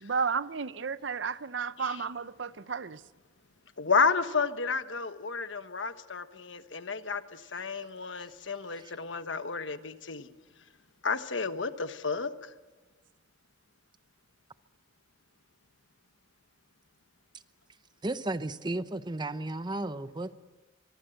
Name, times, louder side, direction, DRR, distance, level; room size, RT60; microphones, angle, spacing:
voice 1, 0.0-3.0, right 5 dB, 70° right, 0.7 m, -32 dB
voice 2, 3.8-10.3 11.0-12.3, left 5 dB, 80° left, 1.3 m, -31 dB
voice 3, 18.0-20.4, right 2 dB, 25° right, 0.8 m, -34 dB
24.0 x 22.5 x 7.9 m
head